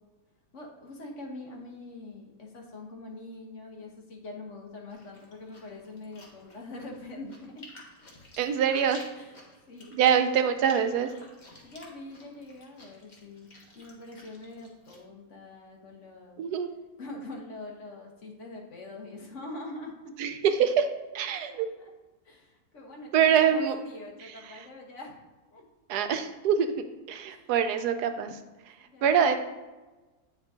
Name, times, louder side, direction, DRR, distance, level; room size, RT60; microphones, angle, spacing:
voice 1, 0.5-7.6 9.1-9.4 9.7-9.9 11.6-16.4 17.0-20.1 21.5-21.9 22.2-25.2 25.5-25.6 27.3-27.5 28.8-29.4, left 2 dB, 50° left, 0 dB, 1.4 m, -44 dB
Chewing mastication, 4.9-15.0, left 2 dB, 30° left, 1.3 m, -53 dB
voice 2, 8.4-9.0 9.9-11.1 16.4-16.7 20.2-20.9 21.1-21.7 23.1-23.8 24.2-24.3 25.9-26.7 27.1-28.4 29.0-29.4, right 8 dB, 90° right, 8 dB, 1.2 m, -24 dB
9.0 x 5.2 x 3.6 m, 1.2 s
omnidirectional pair, 1.6 m